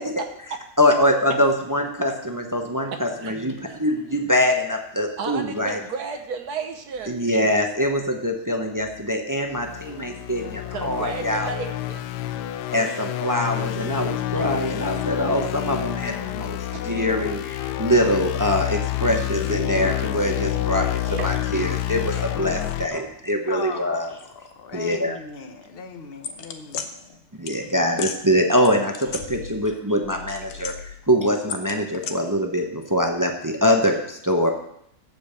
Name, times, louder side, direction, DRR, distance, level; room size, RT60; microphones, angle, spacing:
voice 1, 0.8-5.8 7.1-11.5 12.7-24.1 24.7-25.2 27.3-34.5, equal, 20° right, 3 dB, 0.6 m, -23 dB
voice 2, 5.2-7.2 10.7-12.1 16.8-16.9 21.1-21.3, right 6 dB, 70° right, 5 dB, 1.4 m, -32 dB
sound 1, 8.8-9.0 9.5-22.9, left 14 dB, 85° left, 1.2 m, -28 dB
voice 3, 23.5-24.2 24.4-27.2, left 5 dB, 40° left, 6 dB, 1.2 m, -38 dB
sound 2, 26.2-26.9 27.5-27.6 27.9-28.2 28.6-29.7 30.0-31.0 31.5-32.1, left 7 dB, 65° left, 1.3 m, -34 dB
8.7 x 7.3 x 6.8 m, 0.74 s
omnidirectional pair, 1.7 m